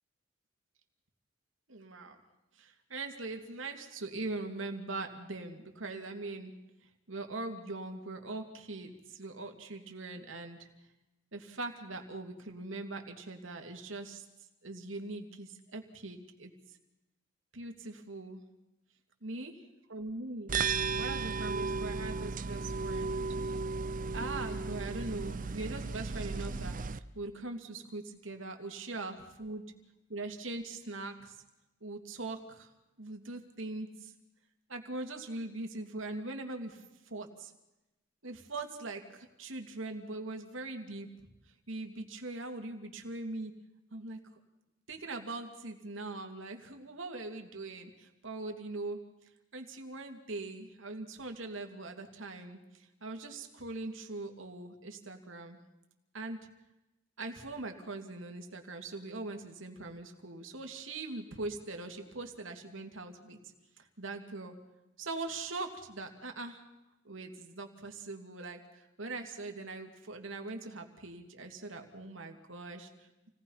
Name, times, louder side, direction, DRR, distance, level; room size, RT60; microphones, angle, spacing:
voice 1, 1.7-2.2 2.6-6.5 7.1-10.7 11.3-14.2 14.6-16.5 17.5-18.4 19.2-19.5 19.9-20.5 21.0-23.2 24.1-29.6 30.1-31.4 31.8-32.7 33.0-34.1 34.7-37.5 38.2-41.3 41.7-43.5 43.9-44.2 44.9-49.0 49.5-55.6 56.1-56.4 57.2-63.4 63.8-64.5 65.0-66.7 67.0-73.3, right 2 dB, 80° right, 4 dB, 2.7 m, -41 dB
sound 1, 20.5-27.0, right 4 dB, 45° right, 0.6 m, -35 dB
28.5 x 18.5 x 5.8 m, 0.96 s
head